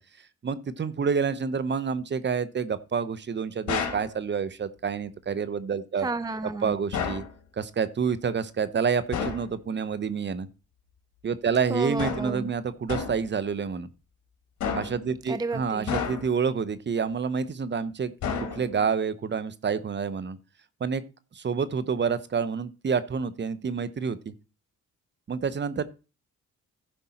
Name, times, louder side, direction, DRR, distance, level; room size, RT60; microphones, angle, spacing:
voice 1, 0.4-6.1 6.6-7.2 7.6-10.5 11.2-13.9 14.7-18.1 18.4-20.4 20.8-21.0 21.3-24.3 25.3-25.8, right 6 dB, 35° right, 1.0 m, -28 dB
sound 1, 3.7-4.1 6.9-7.3 9.1-9.5 12.0-12.4 12.9-13.3 14.6-15.1 15.9-16.5 18.2-18.9, left 6 dB, 70° left, 3.4 m, -31 dB
voice 2, 6.0-6.7 11.7-12.5 15.3-15.9, right 3 dB, 15° right, 0.5 m, -31 dB
15.0 x 5.3 x 4.4 m
cardioid pair, 90°, 30 cm